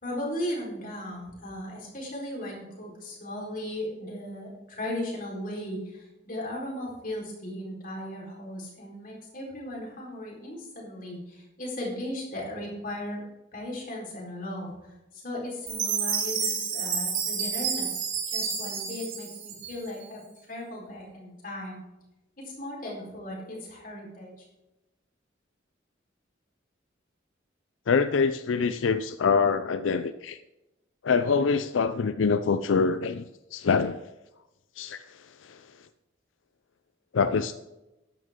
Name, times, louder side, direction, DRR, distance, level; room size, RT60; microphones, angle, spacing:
voice 1, 0.0-13.2 13.5-14.7 15.1-18.0 18.3-20.2 20.5-21.8 22.4-24.5, left 1 dB, 45° left, -2 dB, 4.1 m, -36 dB
Chime, 15.7-20.0, right 6 dB, 85° right, 3.7 m, -30 dB
voice 2, 27.9-30.4 31.0-33.2 33.5-34.0 34.8-35.6 37.1-37.5, left 5 dB, 85° left, 11 dB, 0.5 m, -25 dB
13.0 x 10.5 x 3.7 m, 0.99 s
head